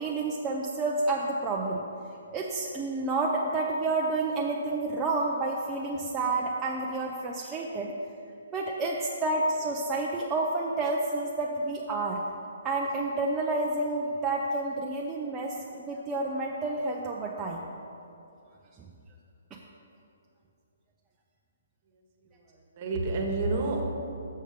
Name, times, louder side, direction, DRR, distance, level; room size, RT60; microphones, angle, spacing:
voice 1, 0.0-1.8 2.3-7.9 8.5-12.2 12.6-17.6 18.8-18.9 19.5-19.6, right 2 dB, 20° right, -2 dB, 0.5 m, -29 dB
voice 2, 21.9-23.9, right 2 dB, 45° right, 1 dB, 1.2 m, -31 dB
6.5 x 6.5 x 5.0 m, 2.6 s
figure-of-eight pair, 135°, 0 cm